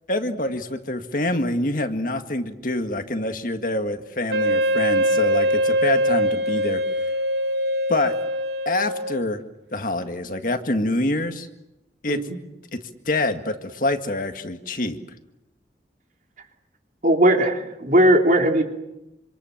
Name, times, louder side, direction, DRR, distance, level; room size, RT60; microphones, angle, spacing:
voice 1, 0.1-6.8 7.9-8.1 8.7-9.4 9.7-11.5 12.0-12.2 12.7-12.8 13.1-15.0, left 1 dB, 50° left, 6 dB, 1.9 m, -26 dB
Wind instrument woodwind instrument, 4.3-9.4, equal, 70° right, 1.6 m, -22 dB
voice 2, 17.0-18.6, right 1 dB, 45° right, 3 dB, 3.5 m, -18 dB
27.0 x 27.0 x 7.3 m, 0.93 s
head